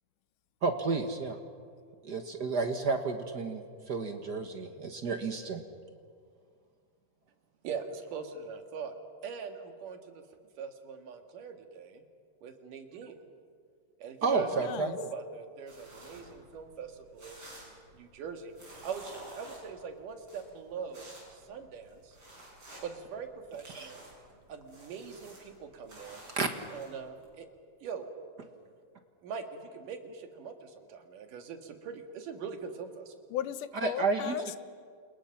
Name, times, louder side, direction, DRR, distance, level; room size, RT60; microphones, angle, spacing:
voice 1, 0.6-1.4 2.0-5.6 14.2-14.9 23.7-23.9 26.3-26.5 33.8-34.3, right 4 dB, 50° right, 6 dB, 1.2 m, -31 dB
voice 2, 7.6-8.9 9.2-10.2 10.6-12.0 12.4-13.2 14.0-18.5 18.8-22.2 22.8-24.0 24.5-26.2 26.7-27.5 27.8-28.1 29.2-33.1, right 6 dB, 85° right, 5 dB, 3.4 m, -42 dB
voice 3, 14.4-15.0 33.3-34.6, left 11 dB, 80° left, 13 dB, 2.3 m, -36 dB
sound 1, 15.7-27.3, right 1 dB, 35° right, 8.2 m, -53 dB
29.5 x 27.5 x 5.9 m, 2.1 s
omnidirectional pair, 3.6 m